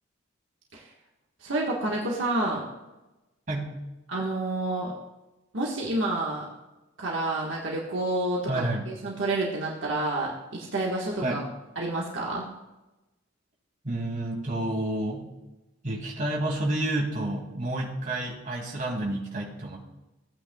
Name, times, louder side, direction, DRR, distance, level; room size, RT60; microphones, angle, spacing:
voice 1, 1.4-2.6 4.1-4.9 5.5-6.4 7.0-11.4 11.8-12.5, right 2 dB, 65° right, -3 dB, 1.4 m, -29 dB
voice 2, 8.5-8.9 11.2-11.4 13.8-15.3 15.8-19.8, right 1 dB, 40° right, -2 dB, 2.3 m, -30 dB
15.5 x 8.8 x 2.3 m, 1.0 s
head